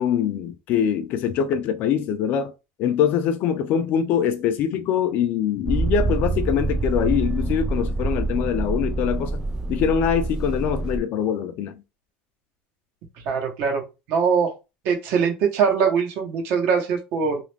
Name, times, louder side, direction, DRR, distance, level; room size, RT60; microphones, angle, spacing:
voice 1, 0.0-2.5 2.8-9.4 9.7-11.8, left 8 dB, 50° left, 0.4 m, -23 dB
Motor vehicle (road), 5.7-11.0, right 3 dB, 15° right, 0.4 m, -26 dB
voice 2, 13.2-14.5 14.8-17.4, right 6 dB, 55° right, 0.8 m, -22 dB
2.4 x 2.0 x 3.1 m
cardioid pair, 150°, 4 cm